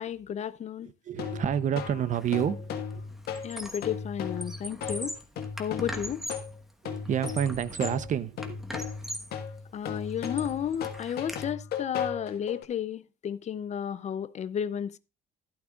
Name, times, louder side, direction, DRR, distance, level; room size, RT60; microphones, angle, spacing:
voice 1, 0.0-0.9 3.4-5.2 5.6-6.3 9.7-15.0, left 9 dB, 45° left, 0.5 m, -33 dB
voice 2, 1.1-3.1 6.8-8.7, right 9 dB, 50° right, 0.7 m, -29 dB
sound 1, 1.2-12.6, left 7 dB, 70° left, 1.5 m, -37 dB
Squeak, 2.1-2.4 2.8-4.0 4.3-6.5 7.0-8.1 8.4-9.4 9.9-11.4, equal, ahead, 1.2 m, -40 dB
12.0 x 11.5 x 2.4 m
cardioid pair, 110°, 17 cm